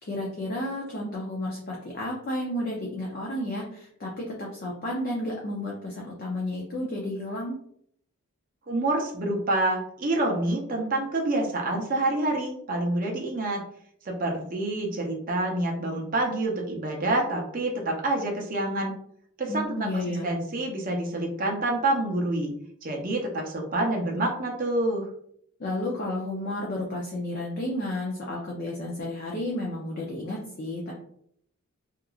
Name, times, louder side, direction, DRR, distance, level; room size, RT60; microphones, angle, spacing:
voice 1, 0.0-7.6 19.5-20.3 25.6-30.9, left 1 dB, 40° left, -3 dB, 0.4 m, -32 dB
voice 2, 8.7-13.6 14.0-18.9 19.4-22.5 22.8-25.0, right 2 dB, 40° right, 0 dB, 0.5 m, -27 dB
2.9 x 2.4 x 2.3 m, 0.67 s
head